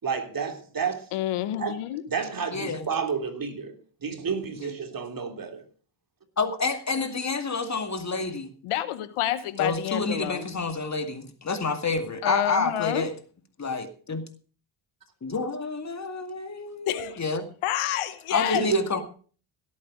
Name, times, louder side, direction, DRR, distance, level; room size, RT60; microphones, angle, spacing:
voice 1, 0.0-0.9 1.6-1.7 2.1-3.7 4.0-5.6 18.5-18.8, right 5 dB, 45° right, 3.3 m, -30 dB
voice 2, 1.1-2.0 8.6-10.5 12.2-13.1 16.9-17.2 17.6-18.7, left 13 dB, 90° left, 1.2 m, -28 dB
voice 3, 2.5-2.9 4.6-4.7 6.4-8.5 9.6-13.1 13.6-14.2 15.2-17.5 18.3-19.0, left 4 dB, 35° left, 2.2 m, -29 dB
17.0 x 8.6 x 5.1 m
cardioid pair, 75°, 49 cm